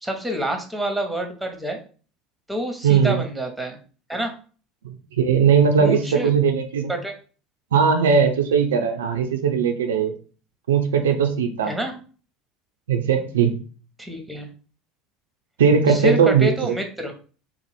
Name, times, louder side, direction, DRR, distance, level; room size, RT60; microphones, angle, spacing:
voice 1, 0.0-1.8 2.5-3.8 4.1-4.3 5.8-6.3 6.9-7.1 11.7-11.9 14.0-14.5 15.9-17.1, right 1 dB, 5° right, 3 dB, 0.7 m, -27 dB
voice 2, 2.8-3.2 4.8-6.9 7.7-10.1 10.7-11.7 12.9-13.6 15.6-16.8, right 6 dB, 75° right, 5 dB, 0.3 m, -19 dB
2.7 x 2.0 x 3.2 m, 0.39 s
figure-of-eight pair, 70°, 0 cm